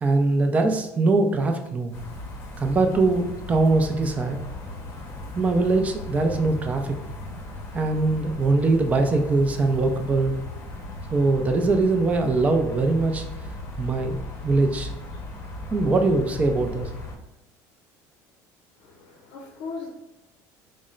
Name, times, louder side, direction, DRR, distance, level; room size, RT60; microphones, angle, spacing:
voice 1, 0.0-1.9 2.6-4.4 5.4-7.0 7.7-10.4 11.1-13.2 13.8-14.9 15.7-16.9, right 3 dB, 20° right, 5 dB, 0.4 m, -22 dB
sound 1, 1.9-17.2, left 2 dB, 35° left, 0.7 m, -37 dB
voice 2, 18.8-19.9, left 4 dB, 85° left, 0 dB, 0.6 m, -38 dB
4.1 x 2.1 x 3.7 m, 0.91 s
cardioid pair, 150°, 7 cm